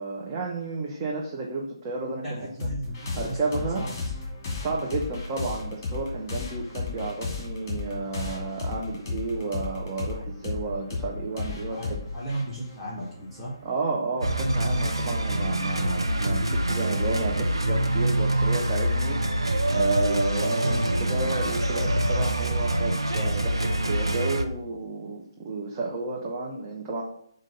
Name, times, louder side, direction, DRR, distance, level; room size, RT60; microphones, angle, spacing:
voice 1, 0.0-2.7 3.2-3.8 4.6-12.0 13.6-27.0, right 3 dB, 25° right, -3 dB, 0.9 m, -32 dB
voice 2, 2.2-4.0 11.7-11.9 12.1-13.5, right 1 dB, 10° left, -9 dB, 1.5 m, -35 dB
sound 1, 2.6-13.7, left 4 dB, 25° left, 2.7 m, -34 dB
sound 2, 14.2-24.4, right 1 dB, 85° right, 0.7 m, -25 dB
7.4 x 2.7 x 5.3 m, 0.68 s
figure-of-eight pair, 145°, 2 cm